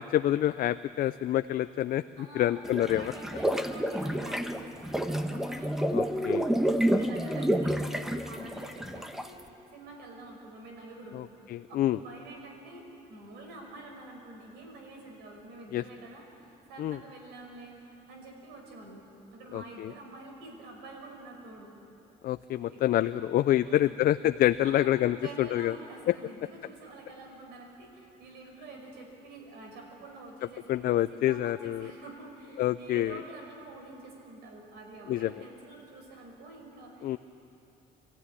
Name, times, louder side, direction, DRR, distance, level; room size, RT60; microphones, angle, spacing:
voice 1, 0.0-3.1 5.9-6.5 11.1-12.0 15.7-15.8 16.8-17.0 19.5-19.9 22.2-25.7 26.1-26.2 30.7-31.9 32.6-33.2 35.1-35.3 37.0-37.2, left 13 dB, 60° left, 12 dB, 0.5 m, -27 dB
voice 2, 2.2-2.6 2.8-19.0 19.3-21.7 22.5-23.2 23.6-24.0 24.6-30.6 31.1-37.2, right 2 dB, 85° right, 1 dB, 5.4 m, -47 dB
sound 1, 2.7-9.4, equal, ahead, 1.2 m, -29 dB
25.5 x 15.0 x 9.8 m, 2.9 s
cardioid pair, 110°, 17 cm